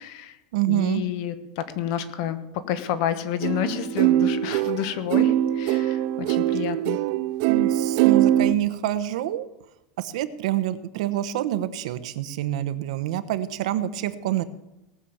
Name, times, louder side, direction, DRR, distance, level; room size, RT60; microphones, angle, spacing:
voice 1, 0.0-0.3 0.7-2.4 2.7-7.0, left 10 dB, 50° left, 11 dB, 1.4 m, -29 dB
voice 2, 0.5-1.0 7.5-9.5 10.0-14.4, right 13 dB, 65° right, 12 dB, 1.1 m, -27 dB
sound 1, 3.4-8.5, right 13 dB, 45° right, 0.4 m, -22 dB
18.5 x 7.0 x 7.2 m, 0.92 s
supercardioid pair, 175°, 4 cm